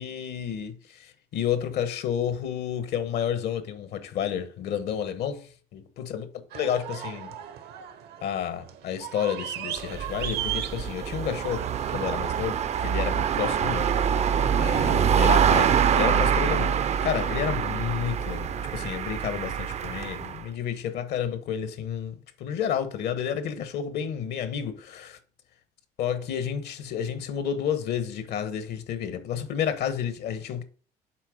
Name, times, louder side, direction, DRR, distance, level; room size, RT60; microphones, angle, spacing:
voice 1, 0.0-6.3 6.5-7.3 8.2-14.3 14.5-16.7 17.0-22.1 22.4-25.2 26.0-30.6, left 9 dB, 75° left, 1.1 m, -31 dB
sound 1, 6.5-16.1, right 11 dB, 75° right, 0.9 m, -39 dB
sound 2, 9.8-20.4, right 8 dB, 40° right, 0.5 m, -25 dB
7.5 x 4.4 x 5.0 m
cardioid pair, 110°, 17 cm